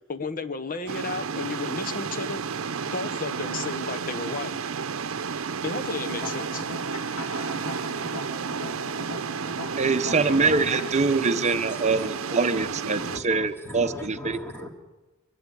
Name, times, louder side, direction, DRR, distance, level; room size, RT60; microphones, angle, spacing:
voice 1, 0.1-2.4 2.8-4.6 5.6-6.6, left 3 dB, 45° left, 8 dB, 1.2 m, -33 dB
sound 1, 0.9-13.2, right 5 dB, 85° right, 0.7 m, -32 dB
sound 2, 5.9-10.9, left 2 dB, 80° left, 2.0 m, -39 dB
voice 2, 9.8-14.4, right 4 dB, 35° right, 9 dB, 0.8 m, -24 dB
voice 3, 10.3-10.7 11.9-12.0 12.5-12.7 13.0-14.7, left 1 dB, 10° left, 1 dB, 2.5 m, -38 dB
24.0 x 11.5 x 9.9 m, 1.1 s
head